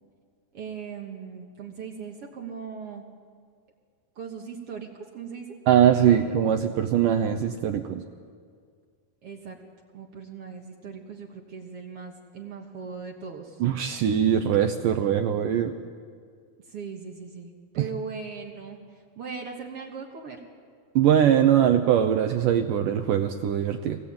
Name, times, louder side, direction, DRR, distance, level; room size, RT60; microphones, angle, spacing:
voice 1, 0.5-3.0 4.1-5.6 6.0-6.4 9.2-9.6 9.9-13.6 16.7-18.8 19.2-20.4, right 5 dB, 55° right, 1 dB, 1.6 m, -39 dB
voice 2, 5.7-8.0 13.6-15.7 17.8-17.9 21.0-24.0, right 9 dB, 80° right, 7 dB, 1.9 m, -22 dB
24.0 x 18.5 x 8.7 m, 2.1 s
omnidirectional pair, 4.7 m